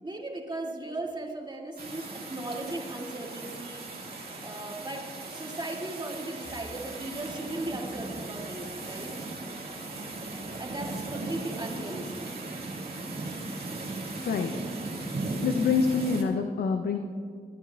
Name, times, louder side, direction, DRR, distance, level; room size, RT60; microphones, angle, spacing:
voice 1, 0.0-3.9 4.4-9.1 10.6-12.3, right 2 dB, 30° right, -1 dB, 2.2 m, -37 dB
sound 1, 1.8-16.2, right 2 dB, 70° right, 1.8 m, -37 dB
voice 2, 14.2-14.5 15.4-17.0, left 5 dB, 90° left, 5 dB, 0.6 m, -26 dB
23.0 x 9.0 x 2.3 m, 2.2 s
cardioid pair, 45°, 16 cm